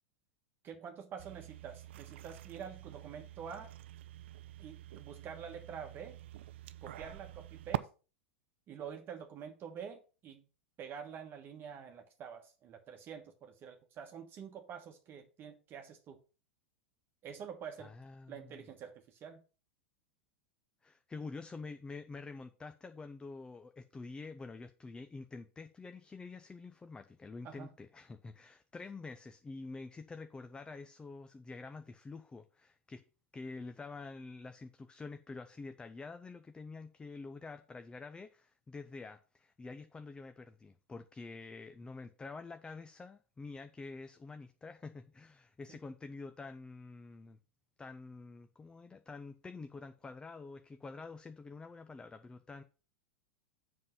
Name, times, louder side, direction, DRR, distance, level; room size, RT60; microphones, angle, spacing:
voice 1, 0.6-3.7 4.6-6.2 6.8-7.9 8.7-10.4 10.8-16.2 17.2-17.9 18.3-19.4 27.4-27.7 45.7-45.8, right 7 dB, 35° right, 1.3 m, -47 dB
sound 1, 1.2-7.8, right 14 dB, 65° right, 0.5 m, -45 dB
voice 2, 17.8-18.6 20.8-33.0 33.3-47.4 47.8-52.6, left 3 dB, 15° left, 0.7 m, -47 dB
7.6 x 5.6 x 5.4 m
hypercardioid pair, 95°, 7 cm